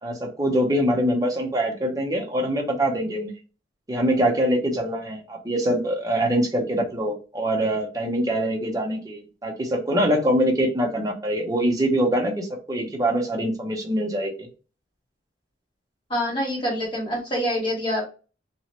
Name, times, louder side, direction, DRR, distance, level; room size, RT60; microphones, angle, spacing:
voice 1, 0.0-3.3 3.9-14.5, right 1 dB, 20° right, 1 dB, 0.6 m, -24 dB
voice 2, 16.1-18.0, equal, 25° left, -3 dB, 1.3 m, -26 dB
3.0 x 2.0 x 2.9 m, 0.34 s
head